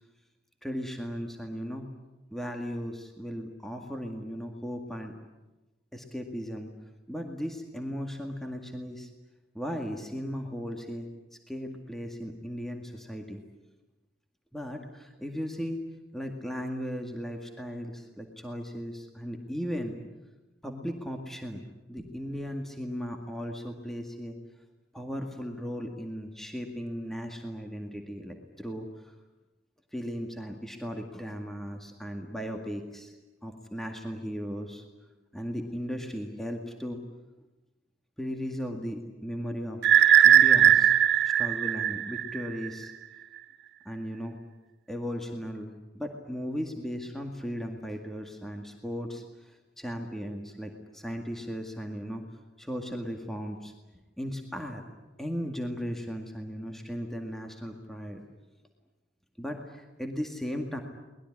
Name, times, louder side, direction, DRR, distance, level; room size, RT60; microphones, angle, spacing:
voice 1, 0.6-1.9 2.3-5.1 5.9-6.7 7.1-9.1 9.5-11.1 11.5-13.4 14.5-15.8 16.1-20.0 20.6-21.6 21.9-24.4 24.9-29.1 29.9-33.1 33.4-34.8 35.3-37.0 38.2-39.8 40.2-41.0 41.2-42.9 43.9-44.4 44.9-52.2 52.6-53.7 54.2-54.8 55.2-58.2 59.4-60.8, equal, ahead, 3 dB, 2.0 m, -36 dB
sound 1, 39.8-42.7, right 10 dB, 80° right, 2.0 m, -19 dB
23.5 x 20.5 x 10.0 m, 1.1 s
head